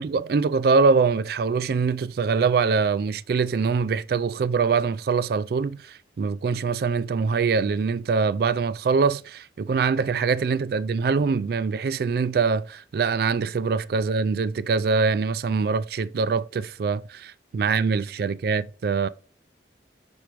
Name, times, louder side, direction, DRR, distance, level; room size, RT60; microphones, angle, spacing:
voice 1, 0.0-19.1, right 5 dB, 55° right, 0.3 m, -23 dB
6.1 x 4.5 x 4.9 m
head